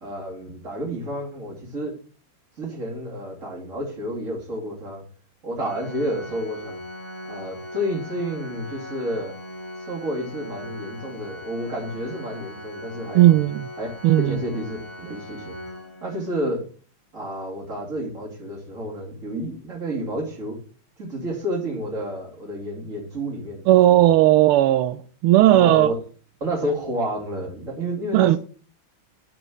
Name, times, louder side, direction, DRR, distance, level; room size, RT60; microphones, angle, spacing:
voice 1, 0.0-1.9 2.6-5.0 5.4-6.8 7.3-9.3 9.9-13.3 13.8-13.9 14.2-15.6 16.0-16.6 17.1-20.6 21.0-24.0 25.5-25.9 26.4-28.4, equal, 35° right, 3.3 m, -30 dB
Organ, 5.6-16.5, left 1 dB, 5° left, 2.1 m, -39 dB
voice 2, 13.1-13.7 14.0-14.4 23.7-25.9 28.1-28.4, right 14 dB, 85° right, 1.5 m, -16 dB
9.8 x 5.2 x 6.3 m
omnidirectional pair, 2.4 m